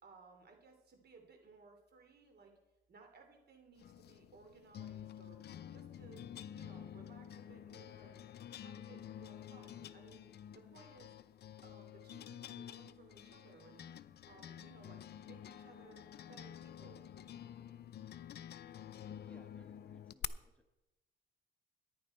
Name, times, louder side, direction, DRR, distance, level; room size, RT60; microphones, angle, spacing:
voice 1, 0.0-2.5 2.9-5.4 5.7-6.2 6.5-8.2 8.6-10.3 10.5-11.2 11.6-13.9 14.3-17.1, right 4 dB, 55° right, 4 dB, 3.0 m, -61 dB
sound 1, 3.8-20.2, left 10 dB, 55° left, 0.6 m, -50 dB
voice 2, 19.2-20.8, left 1 dB, 5° left, 4 dB, 1.3 m, -64 dB
14.5 x 10.5 x 4.4 m, 1.0 s
cardioid pair, 90°, 20 cm